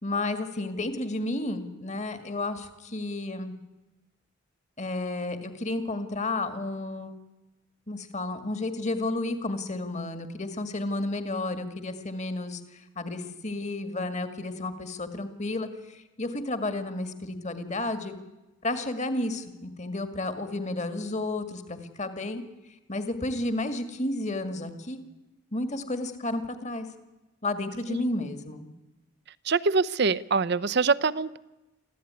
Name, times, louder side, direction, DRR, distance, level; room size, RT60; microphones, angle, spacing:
voice 1, 0.0-3.5 4.8-7.1 7.9-18.2 18.6-22.4 22.9-25.0 25.5-26.9 27.4-28.7, left 2 dB, 35° left, 9 dB, 2.0 m, -32 dB
voice 2, 29.5-31.4, right 4 dB, 55° right, 16 dB, 0.7 m, -24 dB
24.0 x 15.0 x 9.7 m, 1.0 s
head